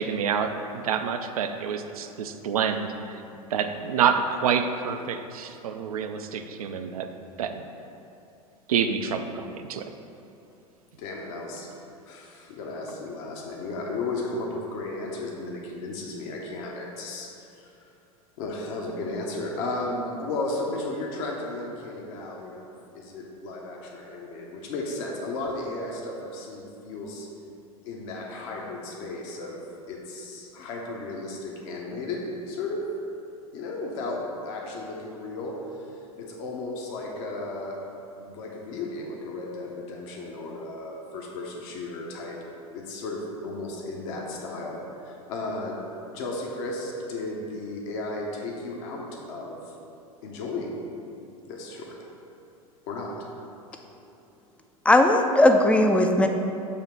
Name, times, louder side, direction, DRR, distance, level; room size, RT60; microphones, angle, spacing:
voice 1, 0.0-2.9 3.5-7.1 7.4-7.6 8.7-9.9, right 7 dB, 75° right, 7 dB, 0.5 m, -27 dB
voice 2, 11.0-11.7 12.0-17.7 18.4-27.3 27.8-29.6 29.9-32.9 33.5-37.8 38.2-42.4 42.7-45.8 46.1-49.7 50.2-50.7 51.5-52.0 52.9-53.2, left 2 dB, 55° left, -1 dB, 0.9 m, -34 dB
voice 3, 54.9-56.3, left 1 dB, 5° left, 5 dB, 0.4 m, -18 dB
6.8 x 2.9 x 5.8 m, 2.7 s
figure-of-eight pair, 85°, 19 cm